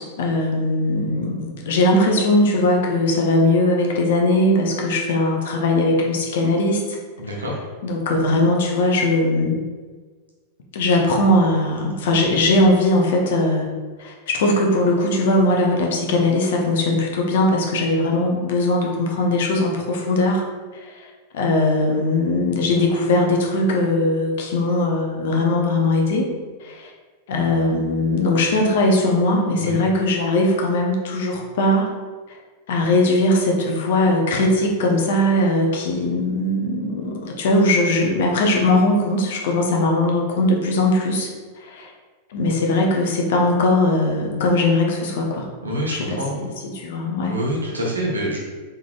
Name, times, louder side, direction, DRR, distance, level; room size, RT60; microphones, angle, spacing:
voice 1, 0.0-6.8 7.2-9.6 10.7-13.7 14.0-20.4 20.7-26.3 26.6-26.9 27.3-31.9 32.7-41.3 41.6-41.9 42.3-45.5 45.9-47.4, left 1 dB, 55° left, 1 dB, 0.6 m, -20 dB
voice 2, 7.2-7.5 29.5-29.8 45.6-46.3 47.3-48.4, equal, 75° right, -3 dB, 0.9 m, -26 dB
3.6 x 3.3 x 2.3 m, 1.4 s
figure-of-eight pair, 90°, 0 cm